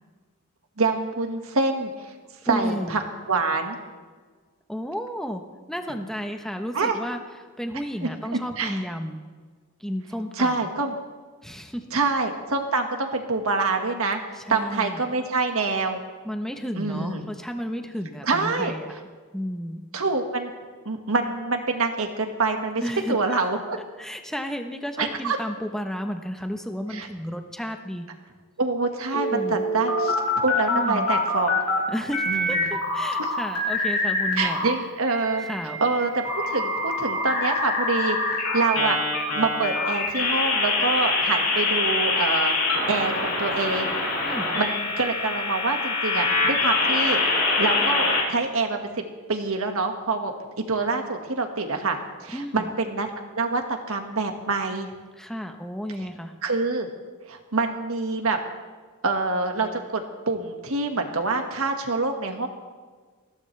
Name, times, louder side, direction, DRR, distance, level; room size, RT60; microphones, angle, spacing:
voice 1, 0.8-1.9 2.4-3.0 3.3-3.8 6.7-7.0 8.0-8.8 10.4-11.0 11.9-14.2 14.5-16.0 16.8-17.3 18.2-18.7 19.9-20.5 20.9-22.8 23.1-23.8 25.0-25.4 26.9-27.1 28.6-31.6 32.3-32.8 33.2-33.3 34.4-35.5 35.8-38.2 38.5-39.0 39.3-42.5 42.9-43.9 44.5-47.2 47.6-49.0 49.3-50.3 50.7-53.1 53.3-54.9 56.4-56.9 57.3-58.4 59.0-62.5, right 3 dB, 65° right, 4 dB, 1.8 m, -26 dB
voice 2, 2.5-3.0 4.7-5.4 5.7-7.2 7.6-9.2 9.8-10.7 11.4-12.0 14.3-15.1 16.2-19.0 19.3-19.8 22.8-23.6 24.0-28.1 29.3-29.6 30.7-31.1 31.9-34.6 35.4-35.8 44.2-44.5 52.3-52.7 55.2-56.3, equal, ahead, 5 dB, 1.0 m, -32 dB
sound 1, 29.1-31.8 32.1-34.7 35.0-48.2, left 2 dB, 90° left, 4.8 m, -25 dB
20.5 x 15.5 x 3.4 m, 1.5 s
head